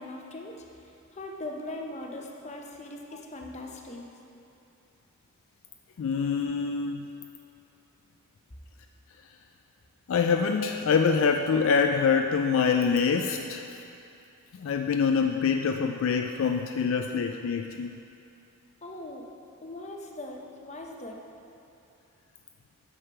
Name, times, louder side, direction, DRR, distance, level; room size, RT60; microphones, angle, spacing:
voice 1, 0.0-4.0 18.8-19.3 19.6-21.2, left 1 dB, 30° left, 1 dB, 0.7 m, -40 dB
voice 2, 6.0-7.1 10.1-13.7 14.6-18.0, left 5 dB, 65° left, 5 dB, 0.3 m, -25 dB
9.1 x 6.4 x 4.7 m, 2.7 s
head